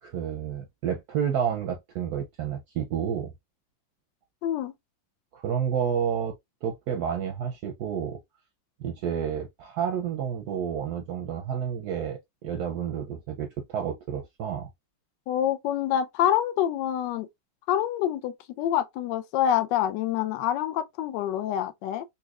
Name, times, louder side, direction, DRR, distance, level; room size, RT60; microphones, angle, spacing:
voice 1, 0.0-3.3 5.3-6.4 6.6-8.2 8.8-14.7, right 8 dB, 70° right, 0.9 m, -30 dB
voice 2, 4.4-4.7 15.3-17.3 17.7-22.0, left 11 dB, 75° left, 1.2 m, -26 dB
4.1 x 2.6 x 2.3 m
omnidirectional pair, 2.1 m